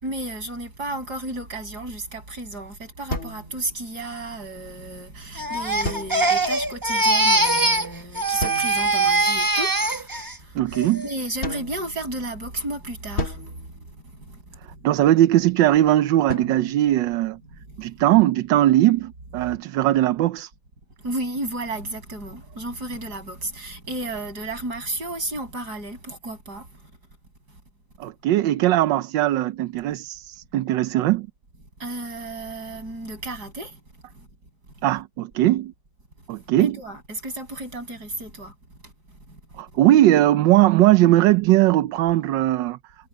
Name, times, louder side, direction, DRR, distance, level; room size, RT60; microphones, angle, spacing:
voice 1, 0.0-10.6 11.0-14.9 17.6-17.9 21.0-26.9 27.5-27.6 28.0-28.1 31.8-33.8 34.1-34.3 36.4-38.5 38.8-39.6, right 2 dB, 55° right, 7.8 m, -33 dB
sound 1, 3.1-4.2 5.8-6.6 8.4-9.1 11.4-12.5 13.2-14.6 16.3-17.8, left 1 dB, 35° left, 2.1 m, -34 dB
Crying sobbing, 5.4-7.9 8.1-10.3 10.7-11.1, right 2 dB, 15° right, 0.8 m, -22 dB
voice 2, 10.5-11.0 14.8-17.4 17.8-20.5 28.0-31.3 34.8-35.7 36.3-36.8 39.5-42.8, right 14 dB, 75° right, 1.3 m, -19 dB
omnidirectional pair, 2.0 m